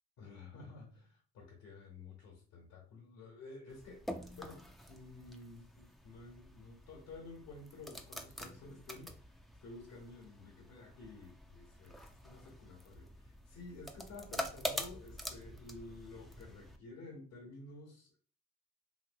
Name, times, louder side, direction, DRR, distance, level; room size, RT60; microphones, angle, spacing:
voice 1, 0.2-9.2 9.6-18.2, left 3 dB, 65° left, -2 dB, 1.1 m, -52 dB
sound 1, 3.7-16.8, equal, ahead, 0.5 m, -46 dB
2.9 x 2.7 x 2.6 m, 0.41 s
hypercardioid pair, 60°, 30 cm